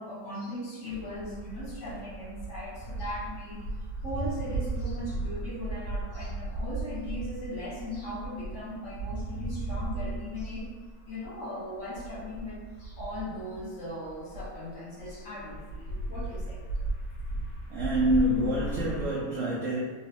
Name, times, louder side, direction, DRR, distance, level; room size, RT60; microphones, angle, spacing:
voice 1, 0.0-3.7 4.0-10.7 11.1-16.6, left 1 dB, 50° left, -6 dB, 1.0 m, -38 dB
sound 1, 0.9-14.7 15.0-19.1, right 2 dB, 75° left, 1.6 m, -36 dB
voice 2, 17.7-19.8, equal, 75° right, -5 dB, 0.7 m, -27 dB
3.9 x 2.2 x 3.3 m, 1.3 s
omnidirectional pair, 1.9 m